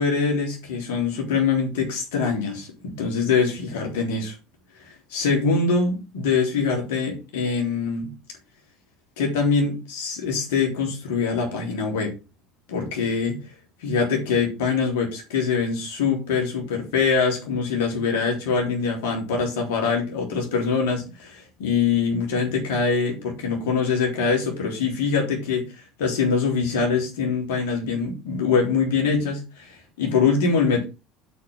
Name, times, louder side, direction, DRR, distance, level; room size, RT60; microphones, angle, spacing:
voice 1, 0.0-4.4 4.8-8.1 9.2-12.2 12.7-13.4 13.8-30.8, left 5 dB, 75° left, 1 dB, 3.6 m, -24 dB
8.2 x 4.8 x 5.6 m, 0.29 s
hypercardioid pair, 75°, 0 cm